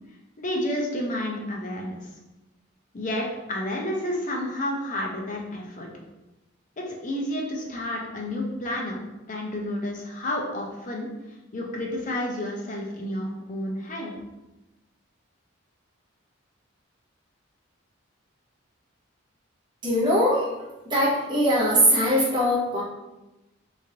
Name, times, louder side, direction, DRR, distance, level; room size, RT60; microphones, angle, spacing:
voice 1, 0.4-2.1 2.9-5.9 6.8-9.0 9.3-11.1 11.5-14.1, left 1 dB, 40° left, -1 dB, 0.5 m, -30 dB
voice 2, 19.8-20.5 20.9-22.8, equal, 25° right, -6 dB, 0.8 m, -21 dB
3.1 x 2.6 x 2.7 m, 1.0 s
head